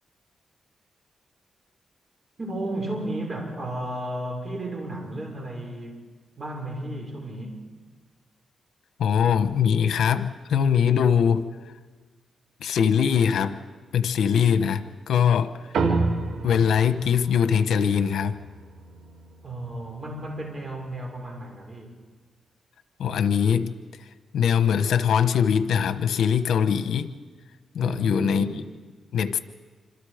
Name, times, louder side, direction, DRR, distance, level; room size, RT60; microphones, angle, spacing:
voice 1, 2.4-6.0 6.4-7.6 19.4-22.0 27.8-28.6, right 1 dB, 35° right, 1 dB, 6.3 m, -33 dB
voice 2, 9.0-11.5 12.6-13.6 13.9-15.5 16.4-18.4 23.0-23.7 24.3-27.1 27.7-28.5 29.1-29.4, left 7 dB, 90° left, 10 dB, 1.1 m, -22 dB
sound 1, 15.7-20.5, right 3 dB, 90° right, 2.4 m, -30 dB
27.0 x 26.5 x 5.1 m, 1.4 s
cardioid pair, 105°, 0 cm